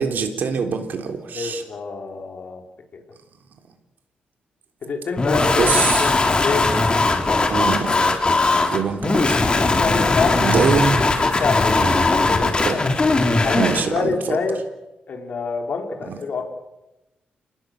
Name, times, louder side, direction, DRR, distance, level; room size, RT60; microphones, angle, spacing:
voice 1, 0.0-1.6 5.6-6.1 7.5-8.0 8.3-8.4 8.7-9.4 10.4-11.0 11.8-11.9 12.4-12.8 13.5-14.4 16.1-16.2, right 5 dB, 65° right, 5 dB, 3.6 m, -23 dB
voice 2, 1.3-2.6 2.9-3.0 4.8-6.7 7.3-7.4 9.5-10.5 11.2-11.8 12.1-12.8 13.4-14.6 15.1-16.5, left 4 dB, 60° left, 2 dB, 4.5 m, -27 dB
sound 1, 5.2-13.9, left 3 dB, 30° left, 3.5 m, -19 dB
28.5 x 19.5 x 7.9 m, 0.98 s
cardioid pair, 115°, 3 cm